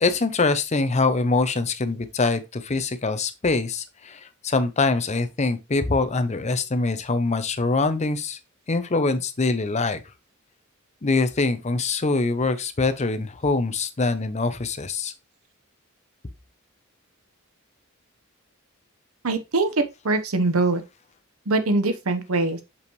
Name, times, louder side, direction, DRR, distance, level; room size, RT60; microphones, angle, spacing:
voice 1, 0.0-8.4 8.7-10.0 11.0-15.1, left 3 dB, 35° left, 0.7 m, -24 dB
voice 2, 19.2-20.8 21.5-22.6, right 3 dB, 85° right, 1.1 m, -23 dB
7.0 x 5.5 x 3.1 m
head